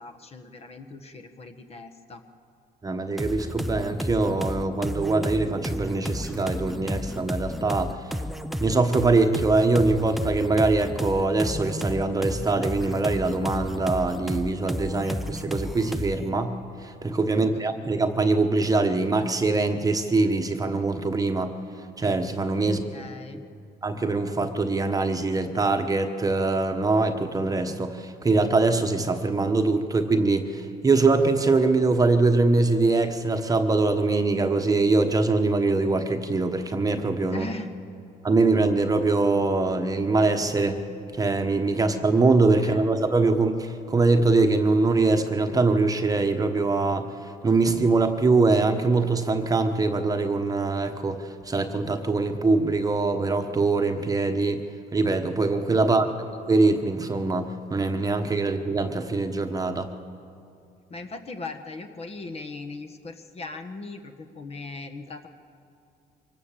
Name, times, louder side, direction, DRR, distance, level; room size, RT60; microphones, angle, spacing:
voice 1, 0.0-2.2 17.3-17.8 22.6-23.4 37.3-37.7 42.6-42.9 55.8-56.2 60.9-65.3, left 3 dB, 35° left, 7 dB, 1.4 m, -39 dB
voice 2, 2.8-8.0 8.6-16.5 16.8-21.5 22.0-22.8 23.8-37.5 38.2-40.8 41.1-47.1 47.4-54.6 54.9-59.9, right 3 dB, 20° right, 5 dB, 1.2 m, -23 dB
sound 1, 3.2-16.3, equal, ahead, 0.6 m, -32 dB
24.0 x 18.0 x 7.5 m, 2.5 s
cardioid pair, 110°, 17 cm